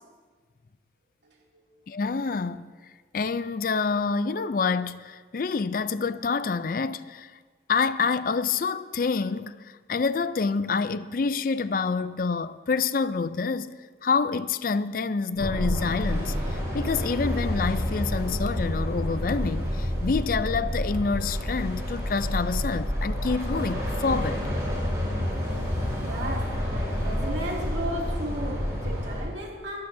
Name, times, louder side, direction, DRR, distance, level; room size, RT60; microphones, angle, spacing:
voice 1, 1.9-2.7 3.1-7.3 7.7-13.8 14.0-24.4, left 4 dB, 50° left, 0.4 m, -27 dB
sci-fi dark pad, 15.4-29.2, equal, 20° right, 4.6 m, -29 dB
voice 2, 26.0-29.8, right 1 dB, 75° right, 2.7 m, -34 dB
21.0 x 13.5 x 2.7 m
head